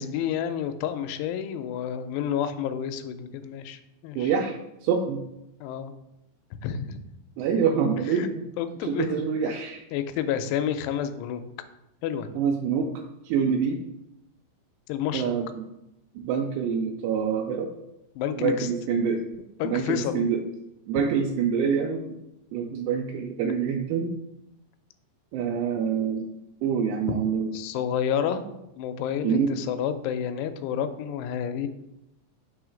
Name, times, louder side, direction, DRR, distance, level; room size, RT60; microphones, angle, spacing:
voice 1, 0.0-4.3 5.6-5.9 6.6-7.0 8.1-8.3 8.6-9.1 9.9-11.4 12.0-12.4 14.9-15.3 18.2-18.7 19.6-20.3 27.5-28.4 28.8-31.7, left 9 dB, 85° left, 9 dB, 2.5 m, -29 dB
voice 2, 4.2-4.6 4.8-5.2 7.4-8.4 8.8-9.8 12.4-12.9 13.3-13.8 15.1-15.6 16.2-17.7 18.4-19.2 19.6-20.4 20.9-22.2 22.5-24.1 25.3-26.3 26.6-27.5 29.2-29.5, right 6 dB, 85° right, 0 dB, 2.6 m, -26 dB
6.2 x 3.1 x 4.9 m, 0.88 s
omnidirectional pair, 4.9 m